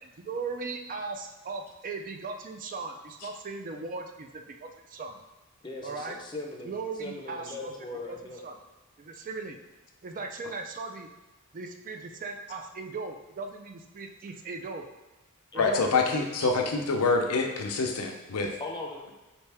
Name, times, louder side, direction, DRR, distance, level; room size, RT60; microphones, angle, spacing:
voice 1, 0.0-5.2 5.8-6.2 6.6-7.7 8.1-8.2 8.4-8.6 9.0-9.6 10.0-11.1 11.5-14.9 15.5-15.9 16.4-16.5, right 4 dB, 35° right, 4 dB, 0.3 m, -38 dB
voice 2, 5.6-6.7 7.0-8.4 15.5-15.7 18.6-19.1, left 2 dB, 20° left, 1 dB, 0.5 m, -39 dB
voice 3, 15.6-18.5, left 4 dB, 90° left, 2 dB, 0.6 m, -26 dB
4.3 x 2.7 x 3.4 m, 1.1 s
head